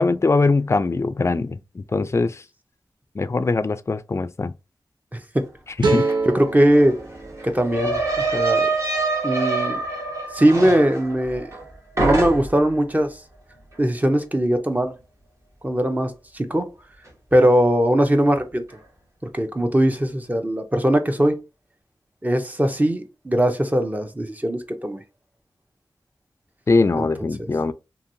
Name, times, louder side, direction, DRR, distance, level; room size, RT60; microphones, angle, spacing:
voice 1, 0.0-2.4 3.2-4.5 5.9-6.1 26.7-27.7, left 3 dB, 35° left, 0.3 m, -21 dB
voice 2, 5.1-5.5 5.8-5.9 6.3-7.0 7.4-8.0 8.3-8.7 9.2-9.8 10.3-11.5 12.0-13.2 13.8-14.9 15.6-16.7 17.3-18.6 19.3-21.4 22.2-25.0 27.0-27.1 27.4-27.5, right 1 dB, 20° right, 0.6 m, -20 dB
sound 1, 5.8-9.0, right 3 dB, 80° right, 0.6 m, -27 dB
sound 2, 6.1-6.2 6.4-11.7 12.0-12.7, right 3 dB, 40° right, 1.1 m, -25 dB
2.8 x 2.7 x 2.6 m
wide cardioid pair, 55°, 8 cm